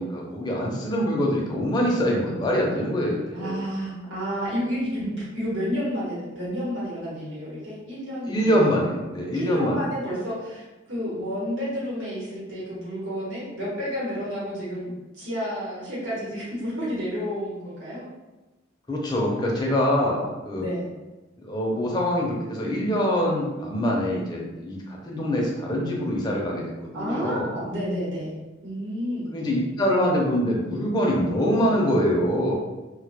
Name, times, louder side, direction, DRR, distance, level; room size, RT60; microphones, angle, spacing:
voice 1, 0.0-3.6 8.3-9.9 18.9-20.6 21.4-27.6 29.3-32.5, equal, 20° left, -2 dB, 0.4 m, -24 dB
voice 2, 3.3-8.7 9.3-18.0 20.6-20.9 26.9-28.3 28.6-29.3, equal, 80° right, -8 dB, 0.9 m, -30 dB
2.1 x 2.1 x 2.7 m, 1.1 s
head